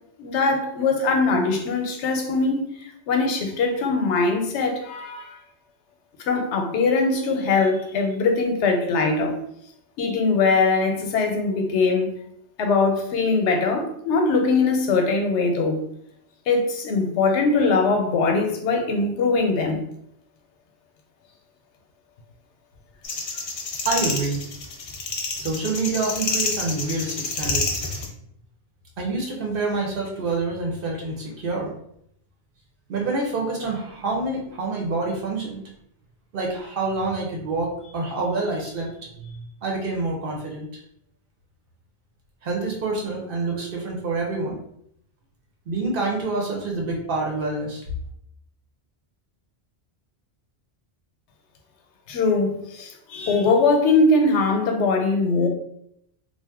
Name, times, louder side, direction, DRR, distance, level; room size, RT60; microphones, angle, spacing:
voice 1, 0.2-5.4 6.3-9.3 10.0-12.1 12.6-15.8 16.5-19.9 52.1-55.5, left 3 dB, 90° left, 4 dB, 0.9 m, -21 dB
sound 1, 23.0-28.1, left 3 dB, 65° left, 0.3 m, -28 dB
voice 2, 23.8-24.4 25.4-27.8 29.0-31.7 32.9-35.6 36.3-38.9 39.2-40.7 42.4-44.6 45.7-47.8, right 3 dB, 60° right, -1 dB, 0.8 m, -27 dB
2.5 x 2.1 x 3.4 m, 0.73 s
omnidirectional pair, 1.1 m